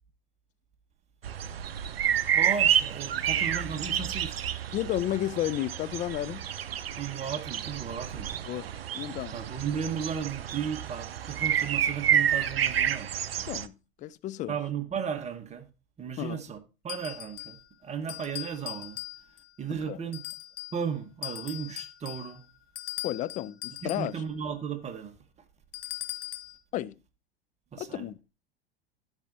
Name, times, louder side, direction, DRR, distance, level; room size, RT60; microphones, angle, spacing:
sound 1, 1.2-13.7, right 9 dB, 80° right, 0.5 m, -29 dB
voice 1, 2.3-4.5 6.9-8.3 9.3-13.1 14.5-15.7 16.0-16.6 16.8-19.0 19.6-20.2 20.7-22.4 23.8-25.2 27.7-28.1, right 7 dB, 20° right, 1.4 m, -35 dB
voice 2, 4.7-6.5 8.5-9.3 13.4-14.6 16.2-16.4 19.9-20.0 23.0-24.2 26.7-27.0 27.8-28.2, left 13 dB, 25° left, 0.4 m, -32 dB
sound 2, 16.9-17.7 18.1-19.5 20.1-20.8 21.2-24.2 25.7-26.6, left 15 dB, 65° left, 0.8 m, -40 dB
12.0 x 5.5 x 2.7 m
figure-of-eight pair, 90°, 30 cm